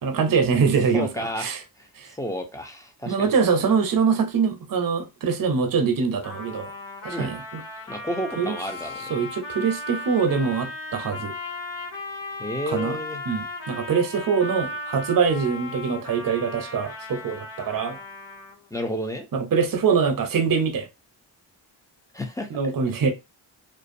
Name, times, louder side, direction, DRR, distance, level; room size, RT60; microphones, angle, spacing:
voice 1, 0.0-1.6 2.0-2.1 3.1-6.7 7.0-7.6 8.4-8.6 9.1-11.3 12.7-13.0 13.3-18.0 19.3-20.9 22.5-23.1, right 5 dB, 45° right, 0.7 m, -23 dB
voice 2, 0.9-3.3 7.1-7.3 7.9-9.2 12.4-13.2 18.7-19.3 22.1-22.5, equal, 5° left, 0.6 m, -31 dB
Trumpet, 6.2-18.7, left 2 dB, 75° left, 1.1 m, -36 dB
2.5 x 2.1 x 2.5 m
cardioid pair, 50°, 45 cm